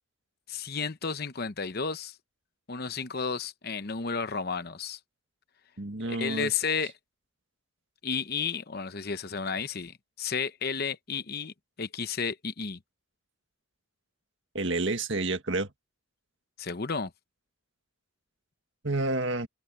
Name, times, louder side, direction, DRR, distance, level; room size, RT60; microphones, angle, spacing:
voice 1, 0.5-2.2 2.7-5.0 6.1-6.9 8.0-12.8 16.6-17.1, left 5 dB, 45° left, 0.8 m, -32 dB
voice 2, 5.8-6.5 14.5-15.7 18.8-19.5, right 2 dB, 60° right, 1.9 m, -29 dB
head